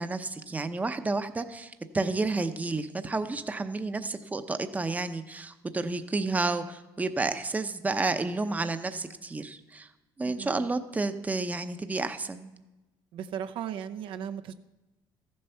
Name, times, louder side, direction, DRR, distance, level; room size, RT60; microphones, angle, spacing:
voice 1, 0.0-9.9 10.2-12.5, right 3 dB, 15° right, 9 dB, 0.7 m, -31 dB
voice 2, 10.2-10.7 13.1-14.5, right 9 dB, 75° right, 9 dB, 0.6 m, -37 dB
14.0 x 7.7 x 5.7 m, 1.1 s
cardioid pair, 105°, 9 cm